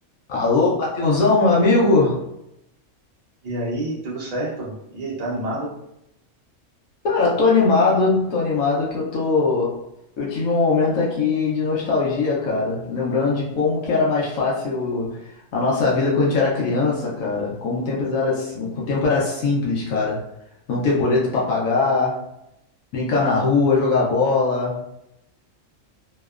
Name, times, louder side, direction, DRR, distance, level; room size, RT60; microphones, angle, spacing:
voice 1, 0.3-2.2 7.0-9.7 10.2-15.2 15.5-20.2 20.7-22.2 22.9-24.8, left 3 dB, 80° left, -5 dB, 1.0 m, -20 dB
voice 2, 3.4-5.7, right 1 dB, 65° right, -5 dB, 0.4 m, -28 dB
2.8 x 2.0 x 2.3 m, 0.84 s
omnidirectional pair, 1.4 m